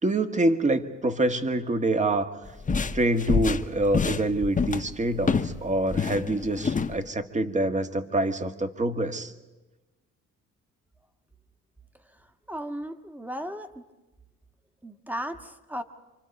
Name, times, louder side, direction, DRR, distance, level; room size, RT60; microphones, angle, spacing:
voice 1, 0.0-2.3 2.9-9.3, right 2 dB, 25° right, 8 dB, 1.6 m, -26 dB
sound 1, 2.5-5.6 5.9-6.9, left 5 dB, 25° left, 1.1 m, -26 dB
voice 2, 12.0-13.8 14.8-15.8, equal, 5° right, 8 dB, 1.6 m, -36 dB
27.5 x 25.0 x 5.4 m, 1.1 s
cardioid pair, 90°, 30 cm